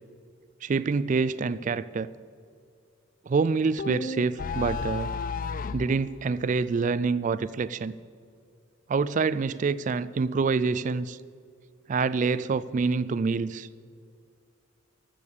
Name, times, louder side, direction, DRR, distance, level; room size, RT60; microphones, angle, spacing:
voice 1, 0.6-2.1 3.3-5.1 5.7-7.9 8.9-11.2 11.9-13.7, right 4 dB, 40° right, 17 dB, 0.3 m, -26 dB
sound 1, 3.8-5.9, left 4 dB, 40° left, 0.4 m, -32 dB
14.0 x 6.7 x 8.4 m, 2.3 s
head